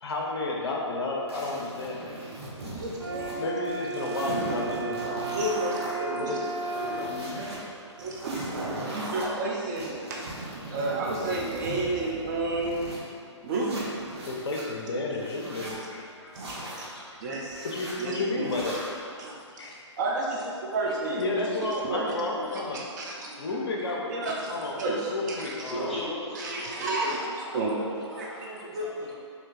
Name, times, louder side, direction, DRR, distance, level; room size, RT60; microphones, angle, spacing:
voice 1, 0.0-2.2 3.4-5.3 5.9-6.4 6.7-7.0 8.3-8.6 10.8-11.0 14.3-16.4 16.9-17.4 17.6-19.8 21.2-22.9 23.4-24.1 24.5-24.8 25.1-26.1, left 2 dB, 55° left, -1 dB, 0.6 m, -32 dB
sound 1, 1.3-3.4 3.7-5.9 6.4-7.6 8.0-9.3 9.8-13.0 13.5-14.6 15.1-15.8 16.3-16.9 17.5-17.9 18.4-19.0, right 1 dB, 55° right, 1.2 m, -38 dB
voice 2, 2.8-3.4 5.3-7.5 8.0-8.5 8.9-10.3 10.7-12.8 13.4-13.9 15.6-15.8 16.4-16.6 17.2-17.7 18.0-18.5 19.2-19.3 20.0-22.1 22.7-23.3 24.1-24.5 24.8-25.5 26.4-27.8 28.1-28.3 28.7-28.9, right 2 dB, 35° right, -2 dB, 0.5 m, -31 dB
sound 2, 3.0-7.1, right 4 dB, 90° right, 0.9 m, -34 dB
voice 3, 25.7-26.9 27.2-29.1, equal, ahead, -12 dB, 1.0 m, -38 dB
3.7 x 2.8 x 4.1 m, 2.4 s
figure-of-eight pair, 130°, 15 cm